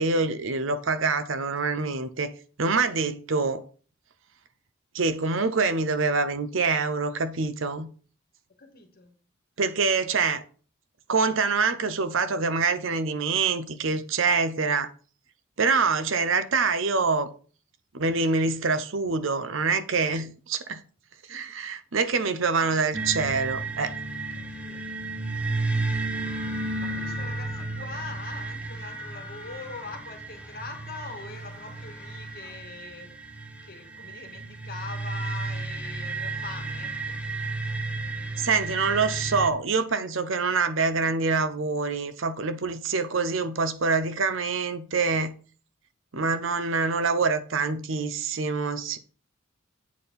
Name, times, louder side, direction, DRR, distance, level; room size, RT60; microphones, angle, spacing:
voice 1, 0.0-2.3 2.6-3.6 4.9-7.9 9.6-10.4 11.1-14.9 15.6-17.3 17.9-20.8 21.3-23.9 38.4-45.3 46.1-49.0, right 4 dB, 65° right, 0.7 m, -25 dB
voice 2, 8.6-9.2 21.3-21.7 22.0-22.2 22.6-22.8 24.3-24.9 26.8-33.1 33.6-37.1, left 4 dB, 45° left, 1.6 m, -42 dB
sound 1, 22.9-39.5, right 3 dB, 5° right, 0.8 m, -33 dB
sound 2, 26.1-27.9 28.5-29.9 30.3-32.6, left 5 dB, 25° left, 1.5 m, -47 dB
8.4 x 4.4 x 5.4 m
head